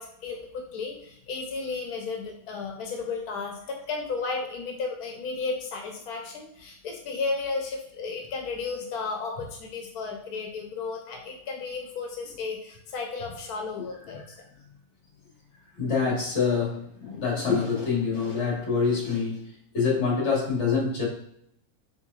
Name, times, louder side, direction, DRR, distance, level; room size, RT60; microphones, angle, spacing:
voice 1, 0.0-14.5, left 4 dB, 90° left, 2 dB, 1.2 m, -34 dB
voice 2, 15.8-19.5 19.7-21.1, left 5 dB, 50° left, -3 dB, 1.6 m, -26 dB
4.4 x 3.8 x 2.3 m, 0.74 s
omnidirectional pair, 1.6 m